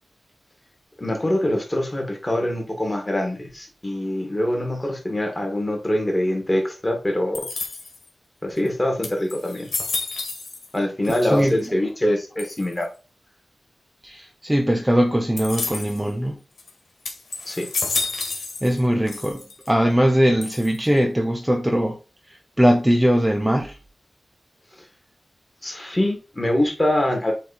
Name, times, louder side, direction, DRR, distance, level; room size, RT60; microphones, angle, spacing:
voice 1, 1.0-7.5 8.4-9.7 10.7-12.9 17.5-17.7 25.6-27.3, left 1 dB, 15° left, 2.2 m, -24 dB
sound 1, 7.3-8.1 8.7-8.8 9.0-10.8 11.0-11.7 12.4-12.8 15.4-16.0 16.6-16.7 17.0-18.8 19.1-19.7 20.4-21.0, left 3 dB, 80° left, 1.8 m, -30 dB
voice 2, 14.0-16.4 18.6-22.0 22.3-23.8, equal, 10° right, 0.8 m, -20 dB
8.3 x 3.1 x 4.4 m
wide cardioid pair, 100°, 0 cm